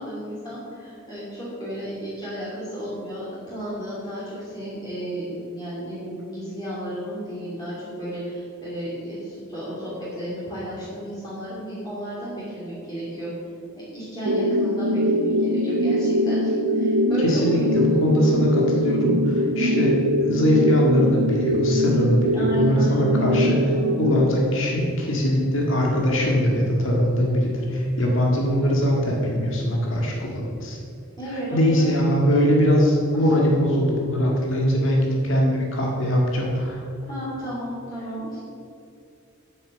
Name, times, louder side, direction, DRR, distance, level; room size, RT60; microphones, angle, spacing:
voice 1, 0.0-13.3 13.8-17.7 19.5-20.0 22.3-24.2 31.2-32.0 33.1-33.3 37.1-38.4, equal, 20° left, -9 dB, 2.7 m, -33 dB
sound 1, 14.3-24.3, equal, 80° right, 0.8 m, -22 dB
voice 2, 17.2-23.6 24.0-30.8 31.5-36.8, equal, 60° left, -2 dB, 1.8 m, -21 dB
8.8 x 8.5 x 6.5 m, 2.5 s
head